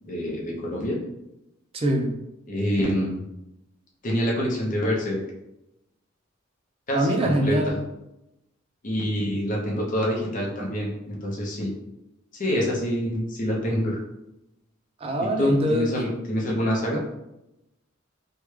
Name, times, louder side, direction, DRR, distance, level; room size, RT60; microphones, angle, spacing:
voice 1, 0.0-1.0 2.5-3.2 4.0-5.2 6.9-7.8 8.8-11.7 12.3-14.0 15.4-17.0, equal, 40° left, -2 dB, 0.8 m, -26 dB
voice 2, 1.7-2.1 6.9-7.8 15.0-15.9 16.9-17.0, right 1 dB, 30° right, 2 dB, 0.4 m, -24 dB
3.5 x 2.2 x 3.1 m, 0.89 s
head